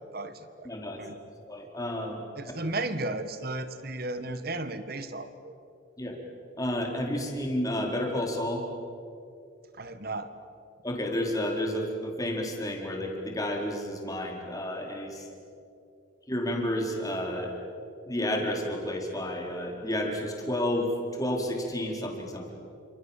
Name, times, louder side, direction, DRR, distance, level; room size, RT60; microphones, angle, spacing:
voice 1, 0.1-0.7 1.0-1.2 2.4-5.5 9.8-10.3, right 2 dB, 55° right, 11 dB, 1.8 m, -34 dB
voice 2, 0.6-1.0 1.5-2.2 6.0-6.2 6.6-8.6 10.8-15.3 16.3-17.5 18.1-22.5, left 1 dB, 20° left, 1 dB, 4.5 m, -31 dB
29.5 x 27.0 x 7.5 m, 2.6 s
head